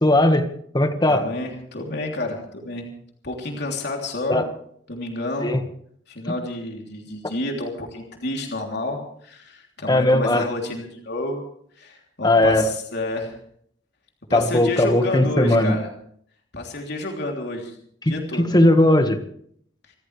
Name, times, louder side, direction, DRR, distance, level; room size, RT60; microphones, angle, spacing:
voice 1, 0.0-0.5 0.7-1.2 4.3-4.4 5.4-5.6 9.9-10.5 12.2-12.7 14.3-15.8 18.0-19.2, left 1 dB, 25° left, 7 dB, 1.7 m, -18 dB
voice 2, 1.1-2.9 3.2-4.4 4.9-5.5 6.1-11.4 11.8-13.4 14.3-15.9 16.5-17.8 18.0-18.5, left 2 dB, 65° left, 1 dB, 3.2 m, -30 dB
27.0 x 14.5 x 3.4 m, 0.64 s
head